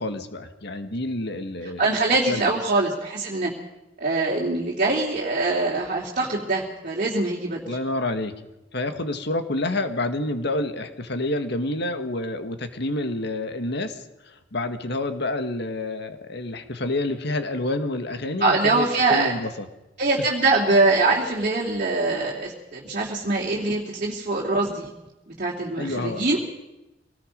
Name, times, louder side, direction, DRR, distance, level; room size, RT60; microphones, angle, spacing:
voice 1, 0.0-1.9 2.3-2.5 7.7-8.3 8.7-19.7 25.8-26.3, left 2 dB, 65° left, 8 dB, 1.9 m, -28 dB
voice 2, 1.8-3.5 4.0-7.8 18.4-19.3 20.0-24.9 25.4-26.4, right 3 dB, 45° right, -3 dB, 2.9 m, -23 dB
25.0 x 19.0 x 5.4 m, 0.97 s
head